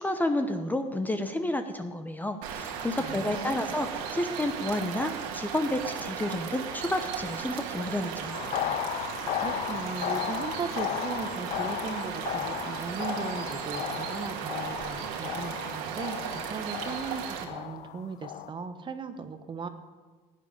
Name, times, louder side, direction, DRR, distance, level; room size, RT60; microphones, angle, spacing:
voice 1, 0.0-8.4, left 1 dB, 10° left, 8 dB, 0.9 m, -30 dB
sound 1, 2.4-17.4, right 7 dB, 75° right, 1.9 m, -36 dB
voice 2, 3.0-3.8 9.4-19.7, right 5 dB, 30° right, 8 dB, 1.2 m, -38 dB
sound 2, 8.3-18.5, left 13 dB, 45° left, 0.4 m, -35 dB
15.5 x 9.6 x 5.4 m, 1.4 s
supercardioid pair, 95°, 16 cm